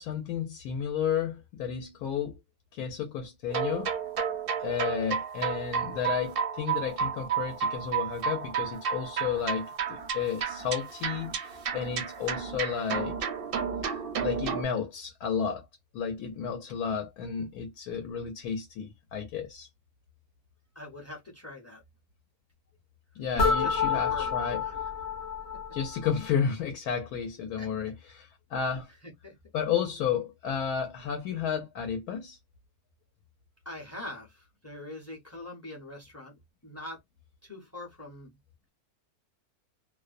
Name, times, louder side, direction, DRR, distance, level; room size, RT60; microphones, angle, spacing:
voice 1, 0.0-2.4 2.7-3.9 4.6-13.2 13.8-13.9 14.2-15.7 15.9-19.7 23.1-24.6 25.7-28.9 29.5-32.4, left 7 dB, 85° left, 1.1 m, -32 dB
sound 1, 3.5-14.6, right 7 dB, 60° right, 0.6 m, -32 dB
voice 2, 20.7-21.8 23.3-24.3 24.7-24.8 27.6-27.9 29.2-29.3 33.6-36.3 36.6-37.0 37.4-38.3, left 2 dB, 15° left, 0.5 m, -43 dB
sound 2, 23.4-26.3, left 5 dB, 55° left, 0.8 m, -29 dB
2.6 x 2.0 x 2.4 m
omnidirectional pair, 1.6 m